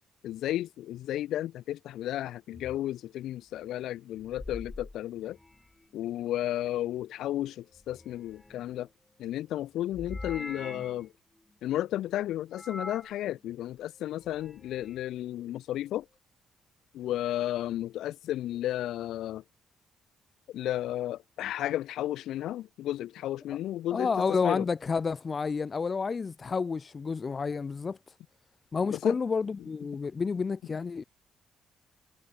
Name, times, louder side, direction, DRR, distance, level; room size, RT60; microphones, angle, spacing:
voice 1, 0.2-5.4 5.9-8.9 9.2-11.1 11.6-16.1 16.9-19.4 20.5-24.1 24.4-24.7 28.9-29.2, left 13 dB, 80° left, 0.3 m, -33 dB
sound 1, 2.5-2.8 4.2-5.9 7.7-8.9 9.9-11.1 12.5-13.2 14.1-15.0, left 2 dB, 15° left, 1.4 m, -44 dB
voice 2, 23.9-28.1 28.7-31.0, left 5 dB, 35° left, 0.8 m, -30 dB
cardioid pair, 90°, 0 cm